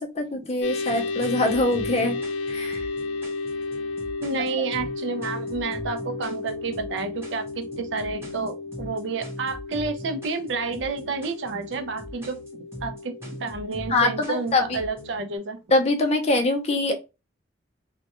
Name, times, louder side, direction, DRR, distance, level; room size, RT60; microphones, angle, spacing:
voice 1, 0.0-2.2 2.5-2.9 13.9-14.8 15.7-16.9, left 2 dB, 35° left, 0.5 m, -23 dB
sound 1, 0.6-15.4, left 3 dB, 85° left, 0.4 m, -34 dB
sound 2, 0.9-15.2, right 1 dB, 15° right, 0.8 m, -41 dB
voice 2, 4.2-13.1 13.4-15.6, right 4 dB, 75° right, 0.5 m, -30 dB
2.2 x 2.1 x 2.9 m
head